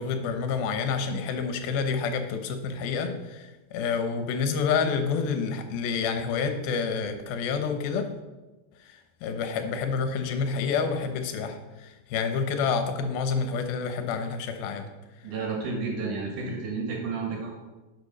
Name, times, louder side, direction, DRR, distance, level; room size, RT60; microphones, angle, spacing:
voice 1, 0.0-8.1 8.8-14.9, left 5 dB, 80° left, 7 dB, 2.8 m, -28 dB
voice 2, 15.2-17.5, right 4 dB, 65° right, 0 dB, 3.1 m, -31 dB
11.5 x 5.5 x 5.4 m, 1.1 s
omnidirectional pair, 4.3 m